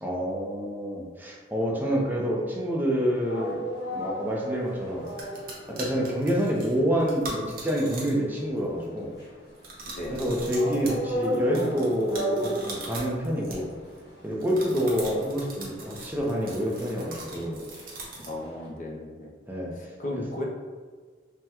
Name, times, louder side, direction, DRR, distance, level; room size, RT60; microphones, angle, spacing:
voice 1, 0.0-3.6 3.9-5.1 5.7-9.1 10.1-13.7 14.2-17.6 19.5-19.7, equal, 10° right, -3 dB, 0.4 m, -27 dB
sound 1, 3.1-18.7, equal, 70° left, 0.9 m, -36 dB
sound 2, 4.7-4.8 5.0-8.3 8.6-9.0 9.5-14.0 14.4-18.4, right 2 dB, 50° right, 0.7 m, -41 dB
voice 2, 10.0-10.4 18.2-19.3 19.7-20.5, left 1 dB, 45° left, 0 dB, 0.5 m, -35 dB
3.4 x 2.1 x 2.8 m, 1.5 s
head